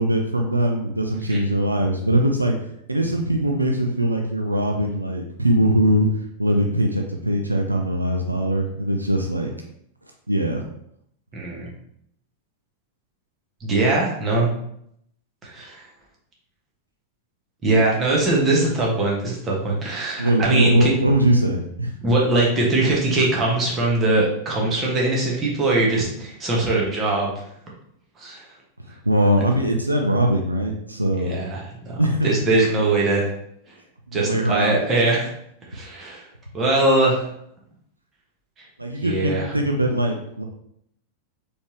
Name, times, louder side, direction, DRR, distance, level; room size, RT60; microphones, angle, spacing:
voice 1, 0.0-2.5 2.9-6.1 6.4-9.5 10.3-10.6 20.2-21.9 28.9-31.4 32.0-32.4 34.1-34.8 38.8-40.4, right 1 dB, 85° right, 2 dB, 0.4 m, -21 dB
voice 2, 11.3-11.7 13.6-14.5 15.4-15.8 17.6-20.9 22.0-27.3 28.2-28.4 31.2-33.3 34.1-35.3 35.7-36.2 36.5-37.3 39.0-39.5, right 2 dB, 25° right, -3 dB, 1.4 m, -21 dB
4.2 x 3.3 x 3.1 m, 0.72 s
figure-of-eight pair, 90°, 0 cm